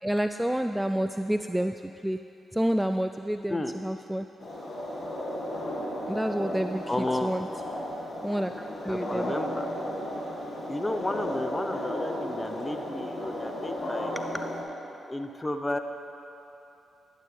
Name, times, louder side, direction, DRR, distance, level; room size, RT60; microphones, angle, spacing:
voice 1, 0.0-2.2 2.5-4.3 6.1-7.5 8.2-9.3 14.2-14.5, right 1 dB, 5° right, 7 dB, 0.3 m, -29 dB
sound 1, 4.4-14.6, left 1 dB, 45° left, 2.1 m, -34 dB
voice 2, 6.9-7.3 8.9-9.6 10.7-14.2 15.1-15.8, left 1 dB, 20° left, 7 dB, 0.7 m, -32 dB
11.0 x 10.5 x 3.3 m, 2.9 s
hypercardioid pair, 40°, 0 cm